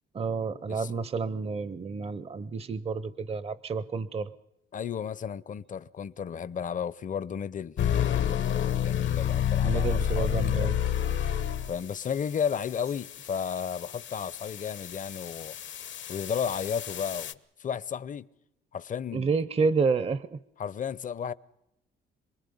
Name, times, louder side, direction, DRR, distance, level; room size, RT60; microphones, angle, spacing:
voice 1, 0.1-4.3 9.6-10.7 19.1-20.4, right 4 dB, 30° right, 0.7 m, -29 dB
voice 2, 4.7-10.7 11.7-15.6 16.1-18.3 18.7-19.4 20.6-21.3, left 7 dB, 40° left, 0.7 m, -34 dB
sound 1, 7.8-17.3, left 10 dB, 70° left, 1.1 m, -30 dB
27.0 x 20.5 x 5.5 m
cardioid pair, 90°, 20 cm